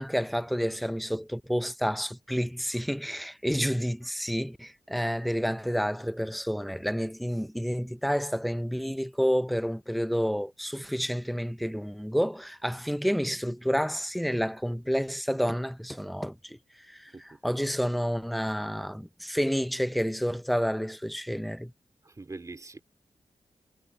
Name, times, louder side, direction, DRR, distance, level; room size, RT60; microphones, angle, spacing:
voice 1, 0.0-16.6 16.9-17.1 17.4-21.7, equal, ahead, 0.8 m, -29 dB
voice 2, 22.0-22.8, right 3 dB, 30° right, 3.0 m, -43 dB
cardioid pair, 80°, 11 cm